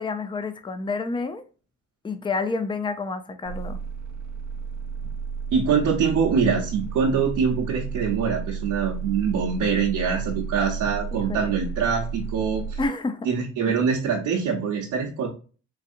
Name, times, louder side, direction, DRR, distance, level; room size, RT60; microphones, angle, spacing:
voice 1, 0.0-1.4 2.0-3.8 11.1-11.6 12.8-13.3, left 3 dB, 15° left, 0.5 m, -29 dB
sound 1, 3.4-12.9, right 6 dB, 65° right, 0.5 m, -33 dB
voice 2, 5.5-12.8 13.2-15.3, right 6 dB, 90° right, 0.9 m, -24 dB
4.1 x 2.7 x 2.5 m
cardioid pair, 90°, 30 cm